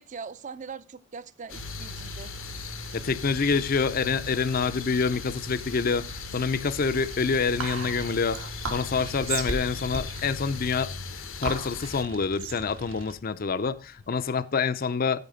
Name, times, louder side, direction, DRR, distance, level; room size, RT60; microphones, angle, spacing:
voice 1, 0.0-2.3, right 5 dB, 35° right, 0.5 m, -41 dB
sound 1, 1.5-12.0, left 8 dB, 75° left, 0.9 m, -40 dB
sound 2, 1.5-13.2, right 1 dB, 65° right, 1.6 m, -42 dB
voice 2, 2.9-8.4 8.7-15.2, left 5 dB, 45° left, 0.5 m, -27 dB
Whispering, 7.6-14.3, right 4 dB, 80° right, 2.1 m, -36 dB
14.0 x 4.8 x 5.0 m
head